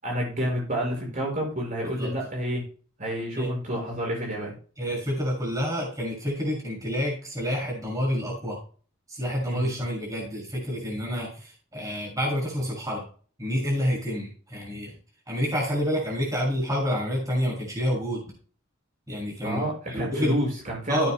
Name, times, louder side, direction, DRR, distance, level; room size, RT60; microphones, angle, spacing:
voice 1, 0.0-2.6 3.0-4.5 9.5-9.8 19.4-21.1, equal, 40° right, -2 dB, 6.1 m, -29 dB
voice 2, 4.8-8.6 9.1-13.0 13.4-14.9 15.3-18.2 19.1-19.6 19.9-20.3 20.9-21.1, equal, 15° right, -3 dB, 6.4 m, -28 dB
17.5 x 8.7 x 2.3 m, 0.41 s
head